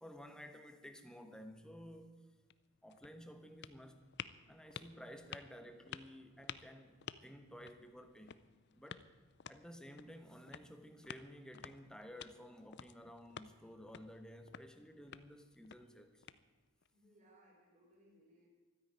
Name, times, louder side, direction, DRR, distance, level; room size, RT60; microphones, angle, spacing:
voice 1, 0.0-2.3 2.8-4.0 4.5-8.5 8.7-9.1 9.5-16.3, equal, 5° left, 1.1 m, -54 dB
sound 1, 2.3-16.9, left 8 dB, 55° left, 0.5 m, -54 dB
voice 2, 16.9-18.5, right 1 dB, 35° right, 4.1 m, -66 dB
13.0 x 10.0 x 9.3 m
head